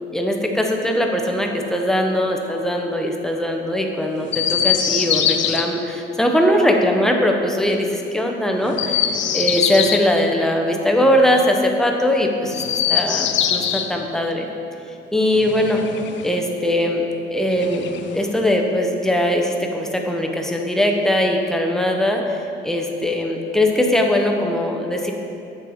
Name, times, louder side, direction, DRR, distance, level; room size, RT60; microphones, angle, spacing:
voice 1, 0.1-9.1 9.3-12.6 12.9-14.5 15.1-15.8 16.2-25.1, left 1 dB, ahead, 2 dB, 0.7 m, -20 dB
Chirp tweet, 4.3-5.6 8.6-10.1 12.5-13.9 15.3-16.4 17.5-18.4, left 9 dB, 70° left, 0.5 m, -22 dB
7.5 x 3.2 x 5.4 m, 2.7 s
cardioid pair, 90°, 20 cm